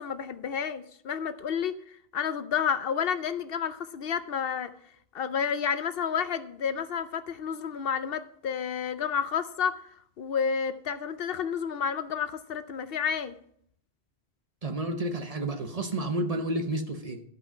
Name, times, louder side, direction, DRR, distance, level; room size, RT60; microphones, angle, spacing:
voice 1, 0.0-4.7 5.1-9.8 10.2-13.3, left 7 dB, 70° left, 12 dB, 0.8 m, -30 dB
voice 2, 14.6-17.2, right 1 dB, 40° right, 6 dB, 0.9 m, -30 dB
12.5 x 5.5 x 5.5 m, 0.67 s
omnidirectional pair, 1.1 m